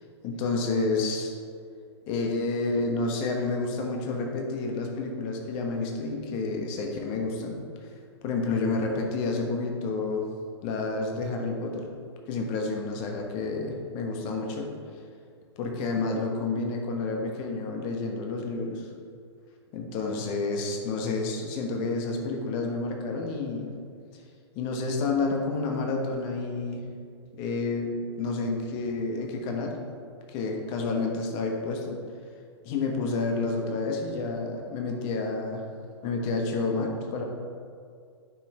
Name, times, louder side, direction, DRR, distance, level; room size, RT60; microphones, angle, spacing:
voice 1, 0.2-1.3 2.1-7.6 8.2-10.3 10.6-11.9 12.3-14.7 15.6-18.9 19.7-23.7 24.5-26.9 27.4-29.8 30.3-32.0 32.6-35.6 36.0-37.2, left 3 dB, 35° left, 2 dB, 1.3 m, -29 dB
8.8 x 5.9 x 4.3 m, 2.2 s
figure-of-eight pair, 110°, 15 cm